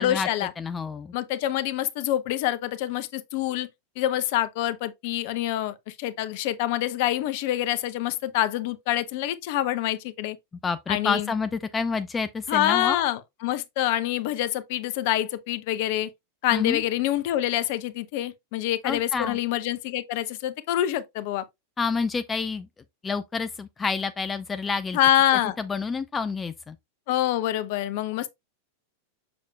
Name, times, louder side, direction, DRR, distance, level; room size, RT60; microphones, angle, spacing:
voice 1, 0.0-0.5 1.1-3.7 4.0-10.4 10.9-11.3 12.5-16.1 16.4-21.4 24.9-25.6 27.1-28.3, left 13 dB, 50° left, 0.7 m, -26 dB
voice 2, 0.6-1.1 10.6-13.0 16.5-16.8 18.8-19.4 21.8-22.7 23.0-25.0 25.6-26.8, left 5 dB, 15° left, 0.5 m, -28 dB
6.9 x 6.6 x 2.2 m
figure-of-eight pair, 90°, 0 cm